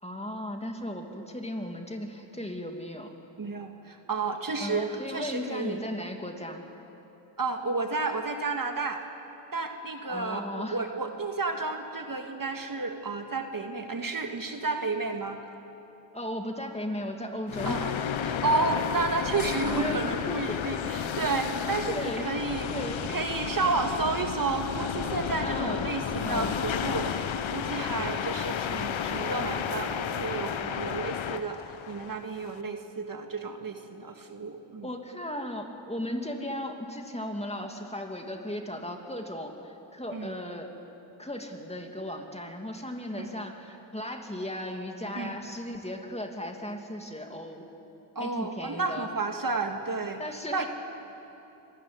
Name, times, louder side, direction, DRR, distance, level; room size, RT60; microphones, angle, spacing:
voice 1, 0.0-3.1 4.6-6.7 10.1-10.8 16.1-17.8 19.7-20.6 21.9-22.3 22.7-23.0 25.4-25.9 26.2-26.5 34.8-40.7 41.2-47.7 48.2-49.1 50.2-50.7, left 1 dB, 15° left, 3 dB, 2.5 m, -36 dB
voice 2, 3.4-5.8 7.4-9.0 9.5-15.4 17.7-22.7 23.1-31.6 31.9-34.9 40.1-40.3 43.1-43.3 45.1-45.3 48.2-50.2 50.5-50.7, right 3 dB, 45° right, 4 dB, 1.8 m, -31 dB
sound 1, 17.5-32.6, left 8 dB, 75° left, 1.1 m, -32 dB
25.0 x 13.5 x 9.5 m, 3.0 s
cardioid pair, 65°, 48 cm